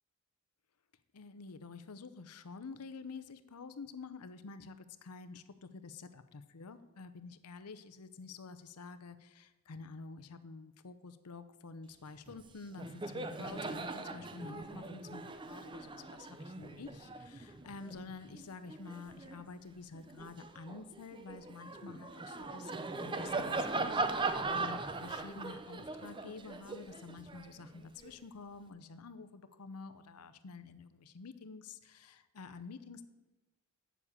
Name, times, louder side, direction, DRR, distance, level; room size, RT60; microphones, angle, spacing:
voice 1, 1.1-33.0, left 4 dB, 90° left, 11 dB, 0.7 m, -49 dB
Laughter, 12.3-12.4 12.7-19.4 19.9-28.1, right 3 dB, 20° right, 0.5 m, -40 dB
8.3 x 7.1 x 7.2 m, 1.1 s
head